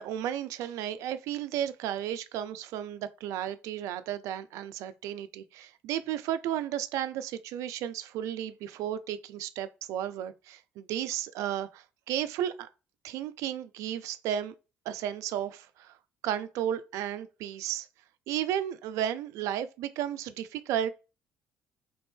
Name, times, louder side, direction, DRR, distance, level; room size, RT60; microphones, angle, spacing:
voice 1, 0.0-12.7 13.0-14.5 14.9-16.0 16.2-17.9 18.3-20.9, right 10 dB, 70° right, 0.3 m, -33 dB
3.4 x 2.5 x 3.5 m
hypercardioid pair, 55°, 6 cm